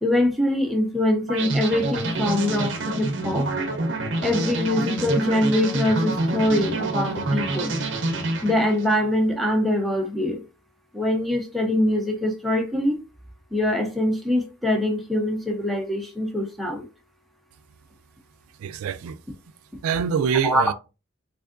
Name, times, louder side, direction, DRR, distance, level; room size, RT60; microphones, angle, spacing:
voice 1, 0.0-3.5 4.2-7.7 8.4-10.4 10.9-13.0 13.5-16.9 20.4-20.6, left 1 dB, ahead, 0.5 m, -23 dB
sound 1, 1.3-9.0, right 2 dB, 55° right, 0.6 m, -27 dB
voice 2, 18.6-19.2 19.8-20.7, right 7 dB, 90° right, 0.3 m, -25 dB
3.5 x 3.3 x 2.4 m
head